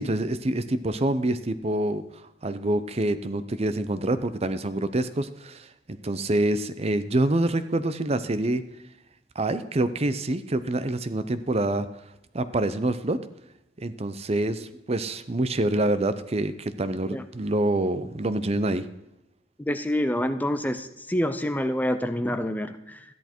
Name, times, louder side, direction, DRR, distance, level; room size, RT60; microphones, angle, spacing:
voice 1, 0.0-8.6 9.4-11.9 12.3-13.2 13.8-18.9, right 1 dB, 35° right, 12 dB, 0.7 m, -26 dB
voice 2, 19.6-23.0, left 1 dB, 10° left, 9 dB, 0.6 m, -27 dB
13.5 x 10.5 x 4.5 m, 0.86 s
head